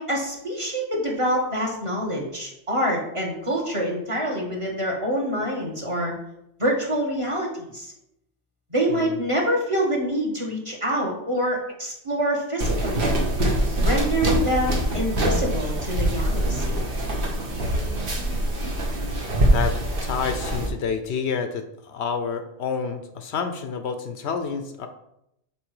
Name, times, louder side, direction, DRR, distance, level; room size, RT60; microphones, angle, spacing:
voice 1, 0.0-6.1 6.6-7.9 8.7-13.1 13.8-16.8, equal, 25° right, -1 dB, 1.4 m, -26 dB
sound 1, 12.6-20.7, right 1 dB, 50° right, 1.3 m, -24 dB
voice 2, 20.0-24.9, left 6 dB, 70° left, 8 dB, 0.8 m, -29 dB
6.1 x 3.9 x 4.7 m, 0.81 s
omnidirectional pair, 1.2 m